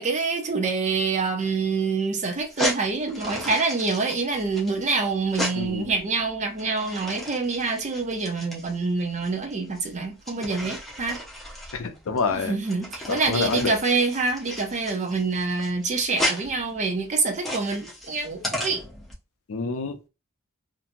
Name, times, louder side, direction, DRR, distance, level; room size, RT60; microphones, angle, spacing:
voice 1, 0.0-11.2 12.3-18.8, right 4 dB, 35° right, 0.6 m, -26 dB
sound 1, 2.4-19.1, left 1 dB, ahead, 0.7 m, -34 dB
voice 2, 5.6-5.9 11.7-12.5 13.1-13.7 19.5-20.1, left 4 dB, 65° left, 0.5 m, -27 dB
2.9 x 2.6 x 2.5 m
head